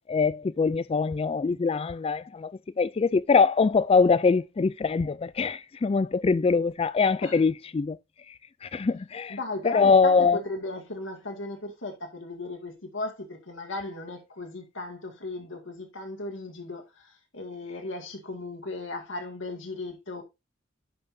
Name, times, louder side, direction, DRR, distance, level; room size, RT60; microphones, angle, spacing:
voice 1, 0.1-8.0 8.6-9.4 9.6-10.4, left 4 dB, 30° left, 0.3 m, -23 dB
voice 2, 9.3-20.2, left 2 dB, 65° left, 2.1 m, -36 dB
10.5 x 5.8 x 2.7 m
head